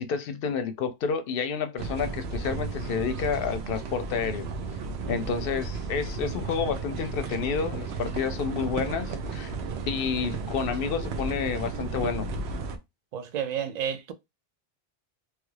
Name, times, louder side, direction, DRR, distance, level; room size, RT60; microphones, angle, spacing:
voice 1, 0.0-4.5 5.1-9.5 9.9-12.3, left 6 dB, 65° left, 0.7 m, -29 dB
sound 1, 1.8-12.8, right 4 dB, 80° right, 0.9 m, -34 dB
voice 2, 5.0-5.4 13.1-14.1, right 8 dB, 55° right, 0.5 m, -32 dB
3.2 x 2.3 x 3.2 m
omnidirectional pair, 1.1 m